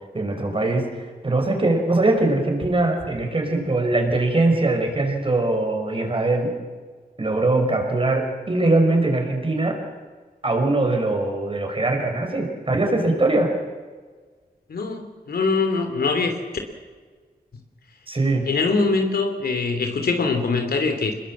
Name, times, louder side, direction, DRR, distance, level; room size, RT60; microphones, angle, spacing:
voice 1, 0.1-1.0 1.2-6.5 7.2-9.8 10.4-13.5 18.1-18.5, right 2 dB, 35° right, 3 dB, 5.2 m, -21 dB
voice 2, 14.7-16.3 18.5-21.2, left 4 dB, 80° left, 6 dB, 3.1 m, -23 dB
27.0 x 21.0 x 7.5 m, 1.5 s
wide cardioid pair, 110°, 16 cm